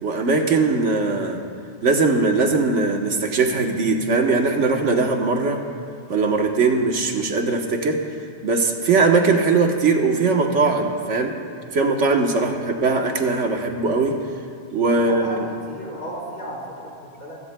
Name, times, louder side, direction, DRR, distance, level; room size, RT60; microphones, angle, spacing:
voice 1, 0.0-1.4 1.8-5.6 6.1-8.0 8.4-11.4 11.7-14.2 14.7-15.4, right 3 dB, 90° right, 3 dB, 1.5 m, -20 dB
voice 2, 14.9-17.4, equal, 55° left, -6 dB, 4.1 m, -35 dB
26.0 x 15.5 x 2.2 m, 2.3 s
omnidirectional pair, 1.2 m